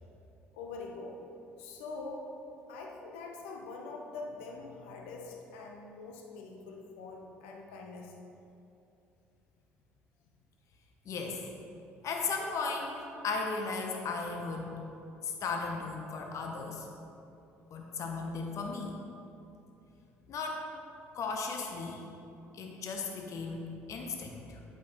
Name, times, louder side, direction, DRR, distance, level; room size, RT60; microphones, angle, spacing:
voice 1, 0.5-1.2 1.6-2.3 2.7-8.1 11.9-12.0, left 3 dB, 80° left, 1 dB, 0.9 m, -44 dB
voice 2, 11.0-11.4 12.0-13.0 13.2-14.8 15.2-16.9 17.7-18.9 20.3-20.6 21.1-22.0 22.5-24.6, left 4 dB, 55° left, 2 dB, 0.9 m, -36 dB
8.5 x 7.9 x 3.0 m, 2.7 s
hypercardioid pair, 55°, 6 cm